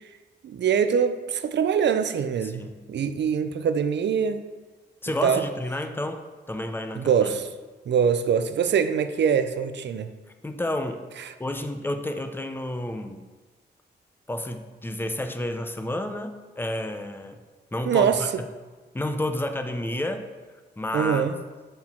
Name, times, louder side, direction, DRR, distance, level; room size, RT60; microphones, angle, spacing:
voice 1, 0.4-4.4 5.2-5.4 7.0-7.5 7.9-10.1 17.9-18.2 20.9-21.4, right 7 dB, 70° right, 0.5 m, -23 dB
voice 2, 2.4-2.9 5.0-6.2 6.5-7.4 10.4-11.0 11.4-13.2 14.3-17.4 17.7-18.5 18.9-20.3 20.8-21.2, left 1 dB, 10° left, 0.6 m, -30 dB
6.3 x 4.5 x 5.8 m
cardioid pair, 90°, 19 cm